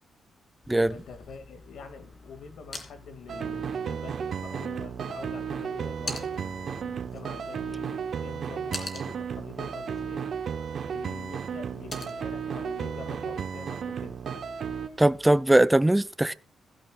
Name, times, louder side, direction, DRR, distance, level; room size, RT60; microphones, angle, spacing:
sound 1, 0.6-15.4, left 3 dB, 35° left, 3.0 m, -46 dB
voice 1, 0.9-10.4 10.8-14.2, left 5 dB, 80° left, 2.3 m, -45 dB
sound 2, 3.3-14.9, right 7 dB, 55° right, 1.1 m, -34 dB
voice 2, 15.0-16.3, right 1 dB, 10° right, 0.5 m, -20 dB
16.0 x 15.5 x 2.5 m
wide cardioid pair, 135°, 0 cm